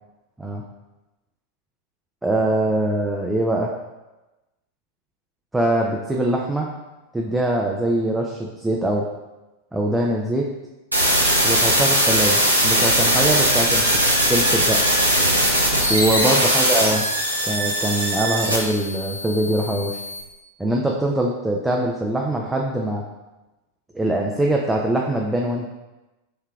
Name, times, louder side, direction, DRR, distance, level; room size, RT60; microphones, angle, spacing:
voice 1, 2.2-3.7 5.5-6.7 7.1-9.0 9.7-10.5 11.4-13.9 14.3-14.8 15.9-17.0 17.4-20.0 20.6-23.0 23.9-25.7, right 1 dB, 10° right, -1 dB, 0.4 m, -22 dB
sound 1, 10.9-20.2, equal, 90° right, 0.6 m, -20 dB
4.7 x 2.7 x 2.3 m, 1.0 s
figure-of-eight pair, 90°, 0 cm